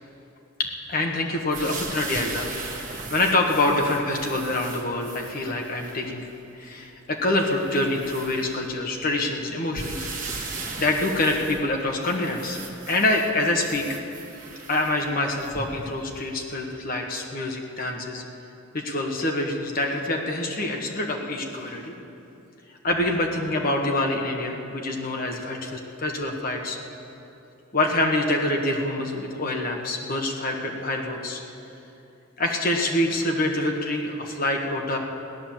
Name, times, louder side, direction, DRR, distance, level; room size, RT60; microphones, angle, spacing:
voice 1, 0.6-6.3 6.6-10.1 10.4-10.5 10.8-13.8 14.7-18.2 18.7-21.9 22.8-26.8 27.7-31.4 32.4-35.0, left 2 dB, 45° left, 1 dB, 1.5 m, -26 dB
sound 1, 1.5-6.0 6.7-6.8 7.3-8.9 9.7-15.9 16.5-16.6, right 3 dB, 40° right, 2.0 m, -38 dB
16.0 x 11.0 x 7.4 m, 2.8 s
head